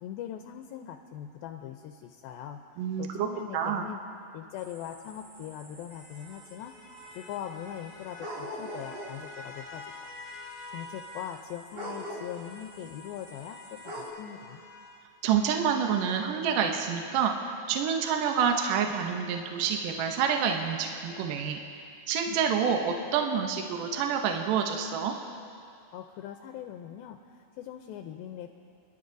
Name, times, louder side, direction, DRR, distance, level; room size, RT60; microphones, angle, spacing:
voice 1, 0.0-4.0 4.3-6.7 7.1-10.1 10.7-14.6 25.9-28.5, left 10 dB, 85° left, 5 dB, 2.3 m, -41 dB
voice 2, 2.8-3.3 3.5-3.8 15.2-21.6 22.1-25.1, right 7 dB, 75° right, 3 dB, 2.1 m, -28 dB
sound 1, 4.6-9.3 9.9-10.0 10.2-14.1, equal, 50° right, 2.3 m, -44 dB
sound 2, 4.8-11.5 11.8-17.1, left 2 dB, 40° left, 1.5 m, -48 dB
26.5 x 12.0 x 2.6 m, 2.4 s
omnidirectional pair, 4.3 m